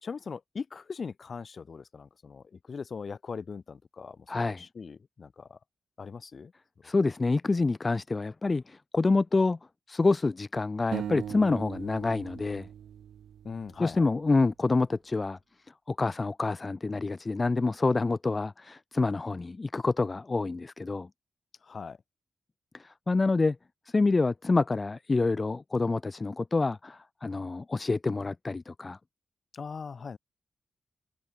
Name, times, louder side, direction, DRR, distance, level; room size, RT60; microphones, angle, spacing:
voice 1, 0.0-5.6 6.0-6.5 13.4-14.0 21.6-22.0 29.5-30.2, left 5 dB, 55° left, 1.8 m, -40 dB
voice 2, 4.3-4.6 6.8-9.6 9.9-12.7 13.8-15.4 15.9-21.1 22.7-23.6 23.9-29.0, left 3 dB, 35° left, 0.4 m, -27 dB
sound 1, 10.9-14.1, right 9 dB, 90° right, 0.4 m, -39 dB
cardioid pair, 65°, 0 cm